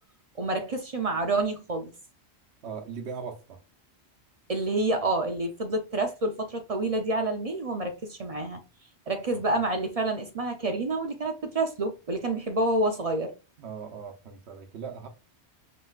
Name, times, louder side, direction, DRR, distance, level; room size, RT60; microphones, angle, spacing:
voice 1, 0.4-1.9 4.5-8.6 9.1-13.3, right 2 dB, 40° right, 0.6 m, -28 dB
voice 2, 2.6-3.6 9.3-9.6 13.6-15.1, right 6 dB, 80° right, 1.0 m, -39 dB
5.4 x 2.9 x 2.4 m
omnidirectional pair, 1.1 m